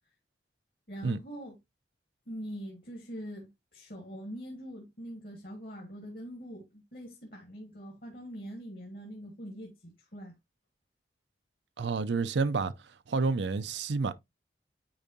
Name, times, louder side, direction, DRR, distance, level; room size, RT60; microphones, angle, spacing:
voice 1, 0.9-1.6 2.3-10.3, equal, 55° left, 1.6 m, -43 dB
voice 2, 11.8-14.1, right 4 dB, 85° right, 0.5 m, -30 dB
8.7 x 4.6 x 2.7 m
head